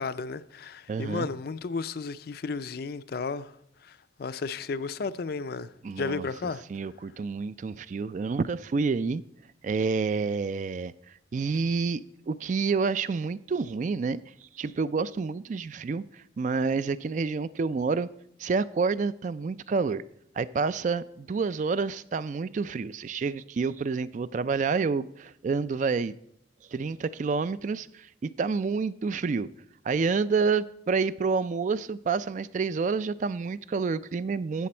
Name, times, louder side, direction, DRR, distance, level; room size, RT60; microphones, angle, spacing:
voice 1, 0.0-3.5 3.8-5.7 6.0-6.6, left 4 dB, 55° left, 0.4 m, -33 dB
voice 2, 0.9-1.3 5.8-6.3 6.7-9.2 9.6-10.9 11.3-18.1 18.4-20.0 20.4-26.2 26.7-29.5 29.8-34.7, right 4 dB, 40° right, 0.3 m, -28 dB
13.0 x 8.4 x 4.3 m
head